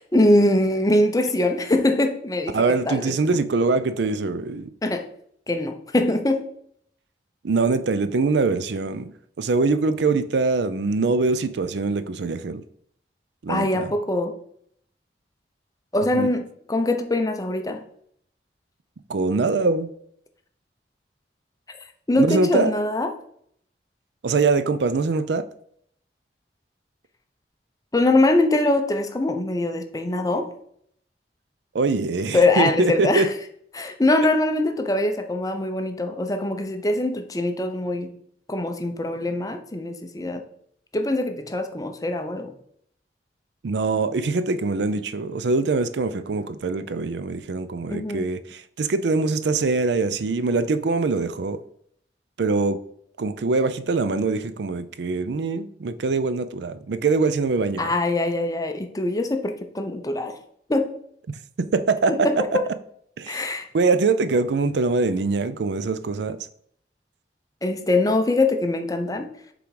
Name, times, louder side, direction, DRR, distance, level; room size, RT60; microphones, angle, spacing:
voice 1, 0.0-2.6 2.9-3.1 4.8-5.1 5.5-6.5 13.5-14.4 15.9-17.8 22.1-23.1 27.9-30.5 32.3-33.3 33.7-38.2 38.5-40.4 40.9-42.5 47.9-48.2 57.8-60.4 60.7-60.9 62.1-62.6 63.3-63.7 67.6-69.3, left 2 dB, 20° left, 0.6 m, -23 dB
voice 2, 2.5-4.7 7.4-9.1 9.4-12.6 13.4-13.9 16.1-16.3 19.1-19.9 22.2-22.7 24.2-25.4 31.7-33.3 43.6-51.6 52.4-52.8 53.2-57.9 61.6-62.1 63.2-63.4 63.7-66.4, right 3 dB, 75° right, 0.5 m, -23 dB
6.8 x 3.8 x 4.7 m
head